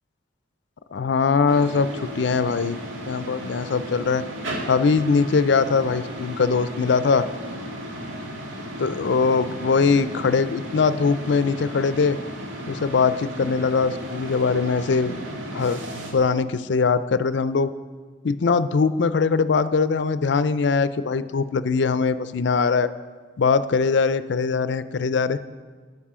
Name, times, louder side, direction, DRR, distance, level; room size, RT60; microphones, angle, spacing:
voice 1, 0.9-2.8 3.1-4.2 4.7-7.3 8.8-12.2 12.7-15.2 15.5-15.8 16.1-17.7 18.2-22.9 23.4-25.4, left 5 dB, 65° left, 14 dB, 0.4 m, -21 dB
sound 1, 1.5-16.1, equal, 85° right, 2.0 m, -35 dB
13.0 x 9.6 x 4.9 m, 1.5 s
head